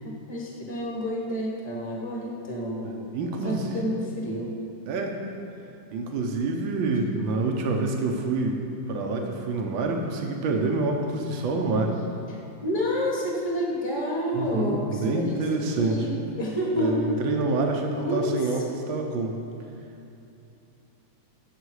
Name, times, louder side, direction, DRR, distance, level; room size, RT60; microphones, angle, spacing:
voice 1, 0.0-2.9 3.4-4.5 12.3-17.1 18.0-18.6, equal, 15° left, -3 dB, 1.4 m, -29 dB
voice 2, 2.8-3.8 4.9-5.2 5.9-8.6 8.9-11.9 14.3-16.1 16.8-19.4, right 3 dB, 85° right, 2 dB, 1.7 m, -27 dB
17.5 x 6.7 x 4.8 m, 2.7 s
omnidirectional pair, 2.1 m